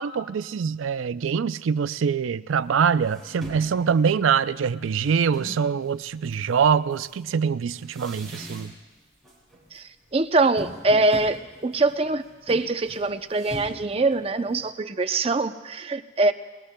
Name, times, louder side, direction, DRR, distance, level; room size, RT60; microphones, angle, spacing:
voice 1, 0.0-8.7, right 6 dB, 85° right, 0.4 m, -24 dB
sound 1, 2.5-2.6 3.0-5.7 6.3-9.0 9.2-9.8 10.0-14.7, equal, ahead, 6.2 m, -42 dB
voice 2, 10.1-16.3, right 2 dB, 30° right, 0.5 m, -23 dB
29.5 x 21.5 x 2.2 m
head